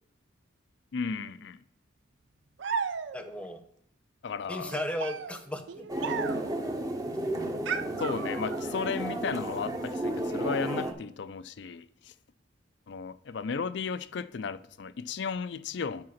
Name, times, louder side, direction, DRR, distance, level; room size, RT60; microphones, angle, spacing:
voice 1, 0.9-1.6 4.2-4.7 8.0-12.1 12.9-16.0, left 5 dB, 65° left, 0.4 m, -34 dB
sound 1, 2.6-3.4 4.6-6.6 7.7-8.8, right 6 dB, 70° right, 0.5 m, -35 dB
voice 2, 3.1-3.6 4.5-5.9 10.7-11.0, left 1 dB, 5° left, 0.8 m, -36 dB
sound 2, 5.9-10.9, right 1 dB, 20° right, 0.8 m, -33 dB
7.7 x 4.9 x 5.7 m
head